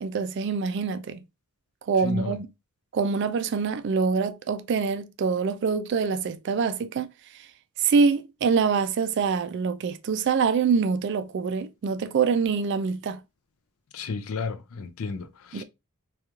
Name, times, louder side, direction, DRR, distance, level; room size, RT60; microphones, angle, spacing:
voice 1, 0.0-1.2 1.9-2.5 2.9-7.1 7.8-13.2 15.5-15.6, right 5 dB, 50° right, 0.3 m, -25 dB
voice 2, 2.0-2.4 13.9-15.6, left 4 dB, 70° left, 0.4 m, -33 dB
3.0 x 2.3 x 2.2 m
head